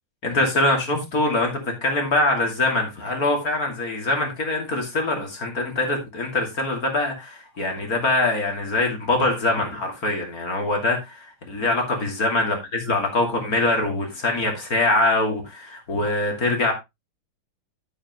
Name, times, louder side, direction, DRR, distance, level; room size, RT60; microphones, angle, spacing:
voice 1, 0.2-12.6 12.9-16.7, left 2 dB, 40° left, 3.0 m, -23 dB
10.0 x 8.9 x 3.1 m
omnidirectional pair, 2.4 m